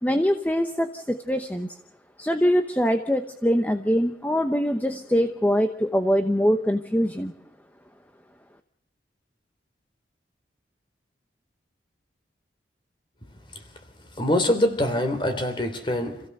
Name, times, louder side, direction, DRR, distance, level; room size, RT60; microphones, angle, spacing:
voice 1, 0.0-1.7 2.2-7.3, equal, 10° left, 7 dB, 0.8 m, -23 dB
voice 2, 14.2-16.2, left 1 dB, 25° left, 6 dB, 3.3 m, -24 dB
27.0 x 16.0 x 6.7 m, 0.74 s
head